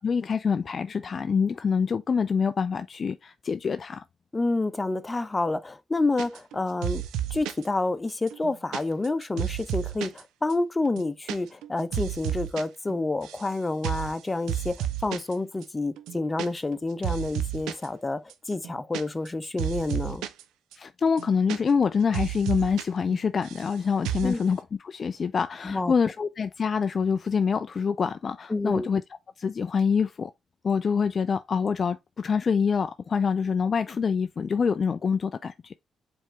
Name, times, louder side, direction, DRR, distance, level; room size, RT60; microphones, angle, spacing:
voice 1, 0.0-4.0 20.8-29.0 29.4-30.3 30.6-35.7, left 6 dB, 50° left, 0.3 m, -26 dB
voice 2, 4.3-7.0 7.3-18.2 18.5-20.2 24.2-24.4 25.6-25.9 28.5-28.9, left 2 dB, 25° left, 0.7 m, -28 dB
sound 1, 6.2-6.6 6.8-7.7 8.1-10.2 10.5-10.6 10.9-11.4 11.6-12.6 12.9-13.5 13.8-14.2 14.5-15.3 15.6-15.7 16.0-16.8 17.0-17.9 18.3-20.4 20.7-20.8 21.1-21.9 22.1-22.8 23.1-23.7 24.0-24.4, right 11 dB, 80° right, 0.4 m, -32 dB
4.5 x 3.5 x 3.1 m
hypercardioid pair, 45°, 0 cm